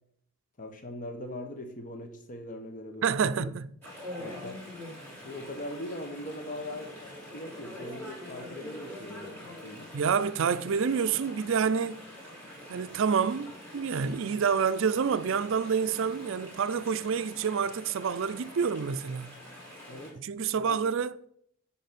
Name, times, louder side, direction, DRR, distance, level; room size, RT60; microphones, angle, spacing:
voice 1, 0.6-3.5 4.2-4.6 5.2-9.9 19.9-20.2 20.5-20.8, left 1 dB, 40° left, 1.0 m, -41 dB
voice 2, 3.0-3.7 9.9-12.0 12.7-19.3 20.2-21.1, right 6 dB, 60° right, 0.4 m, -28 dB
Chatter / Stream, 3.8-20.1, left 1 dB, 10° left, 3.6 m, -45 dB
8.2 x 5.7 x 4.1 m
head